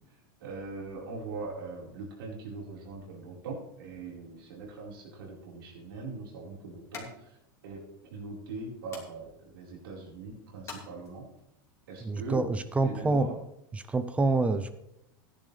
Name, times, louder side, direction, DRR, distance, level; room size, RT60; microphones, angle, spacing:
voice 1, 0.4-7.4 7.6-11.3 11.9-12.5 12.8-13.4, right 3 dB, 85° right, -2 dB, 4.5 m, -41 dB
sound 1, 5.2-11.5, left 4 dB, 25° left, 2.7 m, -51 dB
voice 2, 12.0-13.3 13.7-14.8, right 3 dB, 10° right, 11 dB, 0.6 m, -27 dB
14.5 x 10.5 x 3.3 m, 0.83 s
supercardioid pair, 145°, 12 cm